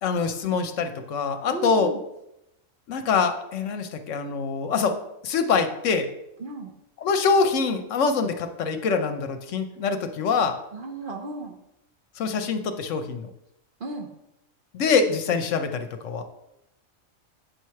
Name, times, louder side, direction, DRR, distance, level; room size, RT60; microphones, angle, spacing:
voice 1, 0.0-1.9 2.9-5.0 5.2-6.1 7.0-10.6 12.2-13.3 14.7-16.2, left 5 dB, 70° left, 8 dB, 1.0 m, -24 dB
voice 2, 1.5-2.0 6.4-6.7 10.7-11.6 13.8-14.1, right 2 dB, 50° right, 2 dB, 0.7 m, -34 dB
8.2 x 3.2 x 5.6 m, 0.85 s
omnidirectional pair, 1.4 m